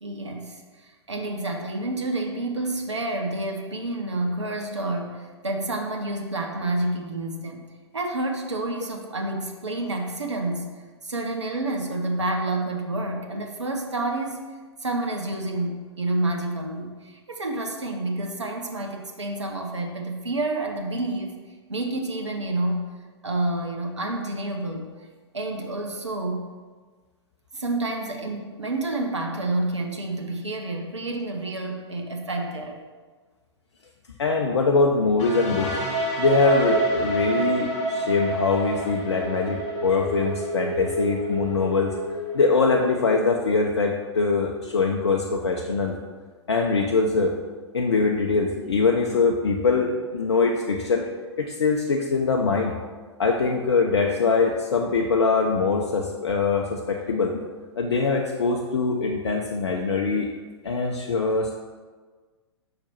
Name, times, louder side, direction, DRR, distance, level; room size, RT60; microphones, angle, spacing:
voice 1, 0.0-7.6 7.9-14.4 14.8-21.3 21.7-22.9 23.2-25.1 25.3-26.5 27.5-32.8, right 2 dB, 80° right, 2 dB, 0.8 m, -29 dB
voice 2, 34.2-35.7 36.2-41.9 42.3-45.9 46.5-47.4 47.7-51.1 51.4-52.7 53.2-57.4 57.8-60.3 60.6-61.6, left 4 dB, 65° left, 1 dB, 0.6 m, -23 dB
sound 1, 35.2-42.9, right 2 dB, 35° left, 1.4 m, -28 dB
5.9 x 4.4 x 5.4 m, 1.4 s
figure-of-eight pair, 105°, 15 cm